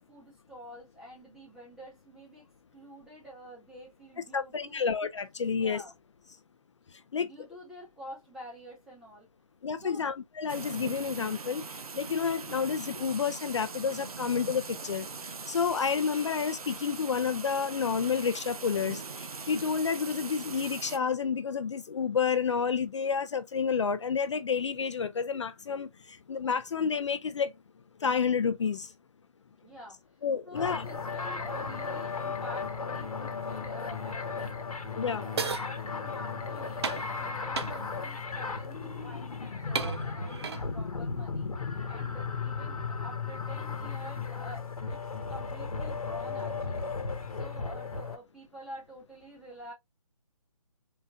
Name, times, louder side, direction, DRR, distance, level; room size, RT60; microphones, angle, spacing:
voice 1, 0.0-2.5 2.7-4.9 5.5-5.9 7.1-9.3 9.8-10.1 29.6-30.2 30.4-49.7, equal, 5° right, 0.6 m, -48 dB
voice 2, 4.3-5.8 7.1-7.3 9.6-15.1 15.5-27.5 28.0-28.9 30.2-30.9 35.0-35.2, left 6 dB, 55° left, 0.4 m, -30 dB
sound 1, 10.5-21.0, right 4 dB, 90° right, 0.6 m, -41 dB
sound 2, 30.5-48.2, left 4 dB, 80° left, 1.0 m, -35 dB
sound 3, 35.4-35.7 36.8-37.1 37.6-37.8 38.9-39.1 39.7-40.7, right 5 dB, 45° right, 0.5 m, -33 dB
3.9 x 2.2 x 2.7 m
figure-of-eight pair, 160°, 18 cm